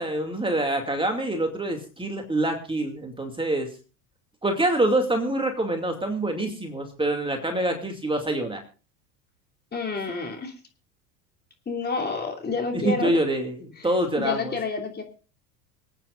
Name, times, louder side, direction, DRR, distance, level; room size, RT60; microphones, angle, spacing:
voice 1, 0.0-3.7 4.4-8.6 12.7-14.6, right 1 dB, 10° right, 4 dB, 2.5 m, -26 dB
voice 2, 9.7-10.5 11.7-13.1 14.2-15.0, left 4 dB, 20° left, 2 dB, 3.1 m, -28 dB
26.0 x 9.2 x 2.5 m, 0.36 s
hypercardioid pair, 85°, 48 cm